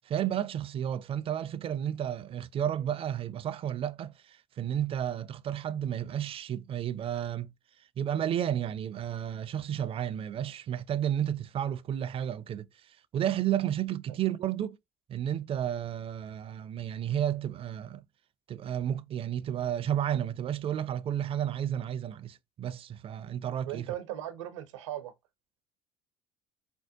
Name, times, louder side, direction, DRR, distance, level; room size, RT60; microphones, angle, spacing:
voice 1, 0.0-7.5 8.0-14.8 15.1-18.0 18.5-23.9, right 10 dB, 35° right, 0.4 m, -32 dB
voice 2, 23.7-25.1, right 12 dB, 80° right, 0.6 m, -38 dB
4.5 x 2.1 x 2.7 m
hypercardioid pair, 65°, 15 cm